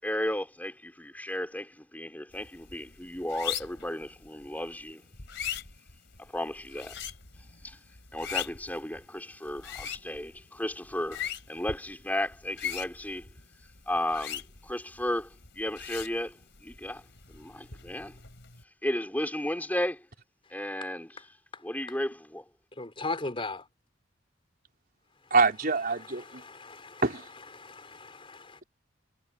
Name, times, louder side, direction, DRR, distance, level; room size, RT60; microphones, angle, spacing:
voice 1, 0.0-5.0 6.2-7.0 7.6-7.8 8.1-11.2 11.5-13.3 13.9-17.0 17.3-18.2 18.8-20.0 20.5-21.1 21.6-22.4, left 1 dB, 10° left, 4.6 m, -34 dB
sound 1, 2.3-18.6, left 9 dB, 65° left, 4.0 m, -41 dB
voice 2, 22.8-23.7 26.2-27.0 27.6-28.6, left 3 dB, 30° left, 4.7 m, -38 dB
voice 3, 25.3-26.4 27.0-27.3, right 4 dB, 50° right, 4.0 m, -25 dB
head